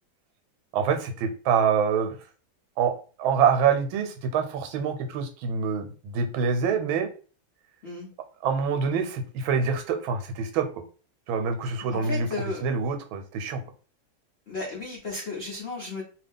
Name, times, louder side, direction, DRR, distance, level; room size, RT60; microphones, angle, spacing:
voice 1, 0.7-2.2 2.8-2.9 3.2-7.1 8.4-10.7 11.3-12.3 12.6-13.6, right 6 dB, 85° right, 7 dB, 1.4 m, -25 dB
voice 2, 11.9-12.6 14.5-16.0, left 3 dB, 80° left, -2 dB, 0.5 m, -34 dB
2.8 x 2.7 x 3.4 m, 0.37 s
omnidirectional pair, 2.2 m